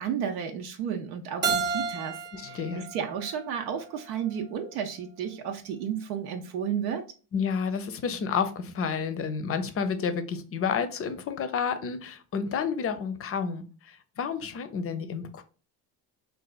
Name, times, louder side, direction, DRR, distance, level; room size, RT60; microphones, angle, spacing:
voice 1, 0.0-7.0, right 8 dB, 85° right, 0.6 m, -33 dB
Keyboard (musical), 1.4-4.3, right 5 dB, 25° right, 0.5 m, -32 dB
voice 2, 2.3-2.8 7.3-15.4, left 6 dB, 35° left, 0.5 m, -30 dB
4.1 x 2.4 x 2.3 m
supercardioid pair, 90°, 41 cm